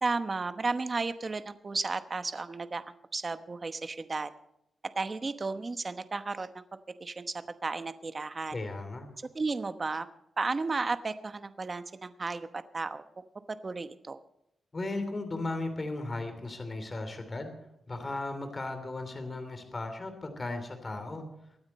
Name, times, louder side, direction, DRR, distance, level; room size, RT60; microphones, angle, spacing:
voice 1, 0.0-4.3 5.0-8.5 9.3-10.1 10.4-14.2, right 3 dB, 35° right, 10 dB, 1.0 m, -34 dB
voice 2, 8.5-9.1 14.7-17.5 17.9-21.3, left 2 dB, 30° left, 7 dB, 3.0 m, -36 dB
23.5 x 9.5 x 4.3 m, 0.80 s
wide cardioid pair, 115°, 0 cm